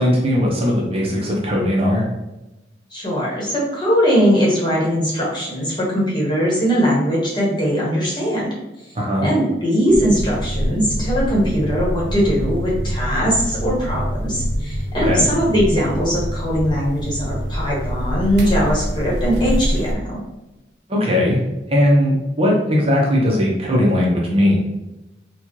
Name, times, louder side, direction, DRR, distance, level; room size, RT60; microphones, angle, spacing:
voice 1, 0.0-2.0 8.9-9.3 15.0-15.2 20.9-21.4 21.7-24.6, left 1 dB, 35° right, -3 dB, 0.8 m, -18 dB
voice 2, 2.9-8.5 9.2-20.2, equal, 25° left, -5 dB, 1.1 m, -20 dB
sound 1, 9.9-19.9, equal, 70° right, 0.6 m, -25 dB
4.2 x 2.3 x 3.0 m, 0.97 s
head